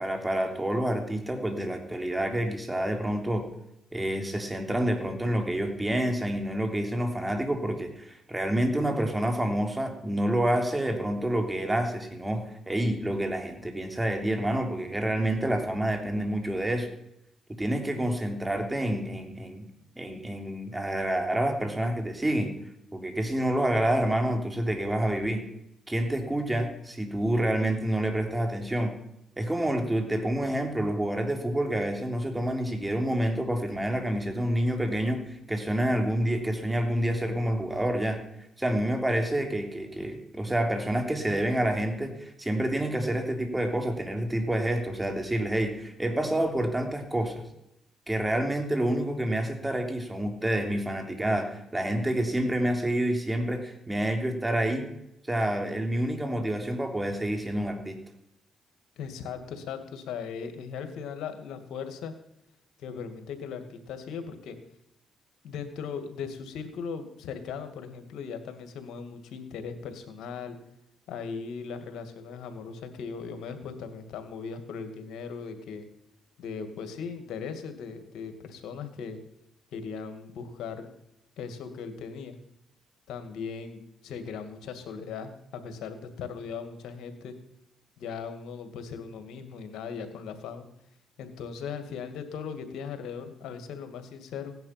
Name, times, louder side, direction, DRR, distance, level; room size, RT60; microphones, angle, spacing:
voice 1, 0.0-3.5 3.9-16.9 17.6-19.7 20.0-22.5 22.9-25.4 25.9-29.0 29.4-38.2 38.6-47.4 48.1-54.9 55.3-58.0, right 1 dB, 15° right, 4 dB, 3.4 m, -28 dB
voice 2, 59.0-62.1 62.8-64.6 65.4-70.6 71.1-75.8 76.4-79.2 79.7-80.9 81.4-82.4 83.1-87.3 88.0-90.7 91.2-94.6, left 6 dB, 80° left, 8 dB, 2.2 m, -38 dB
16.5 x 10.5 x 5.9 m, 0.81 s
cardioid pair, 70°, 0 cm